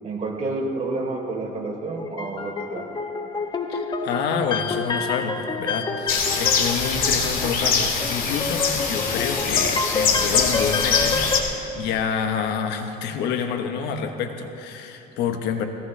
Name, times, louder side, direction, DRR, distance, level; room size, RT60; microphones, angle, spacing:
voice 1, 0.0-2.8, right 2 dB, 40° right, -2 dB, 3.6 m, -29 dB
sound 1, 1.9-11.4, left 4 dB, 25° left, 1.1 m, -29 dB
voice 2, 3.7-15.7, left 6 dB, 85° left, 6 dB, 1.2 m, -28 dB
sound 2, 6.1-11.4, left 5 dB, 55° left, 2.1 m, -23 dB
20.5 x 17.0 x 3.3 m, 2.9 s
cardioid pair, 110°, 17 cm